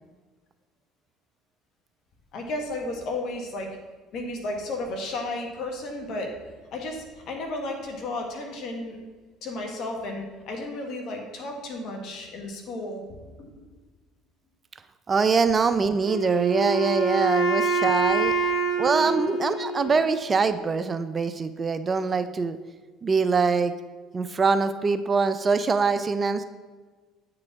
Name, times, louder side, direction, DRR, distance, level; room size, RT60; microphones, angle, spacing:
voice 1, 2.3-3.8 4.1-6.4 6.7-9.0 9.4-13.6 19.0-19.2, left 2 dB, 65° left, 3 dB, 1.4 m, -33 dB
voice 2, 15.1-18.3 18.8-22.6 23.0-23.7 24.1-26.4, right 4 dB, 30° right, 11 dB, 0.4 m, -23 dB
Wind instrument woodwind instrument, 16.1-20.1, right 3 dB, 45° left, 1.3 m, -26 dB
8.6 x 4.8 x 3.5 m, 1.4 s
supercardioid pair, 85°, 0 cm